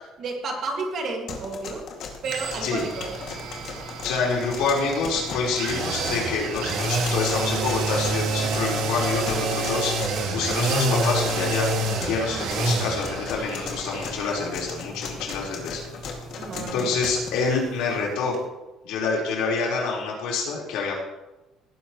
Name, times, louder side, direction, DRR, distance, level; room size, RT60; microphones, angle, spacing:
voice 1, 0.2-1.9 2.2-3.1 12.3-12.4 16.4-16.9, right 3 dB, 40° right, 2 dB, 2.1 m, -31 dB
sound 1, 1.3-17.3, left 5 dB, 50° left, 2.2 m, -37 dB
sound 2, 2.2-18.1 18.3-18.4, right 2 dB, 65° right, 2.3 m, -29 dB
voice 2, 4.0-10.1 10.3-11.7 12.0-15.8 16.6-18.3 18.8-20.9, left 4 dB, 80° left, -3 dB, 4.3 m, -27 dB
18.5 x 10.0 x 3.1 m, 1.0 s
cardioid pair, 170°, 0 cm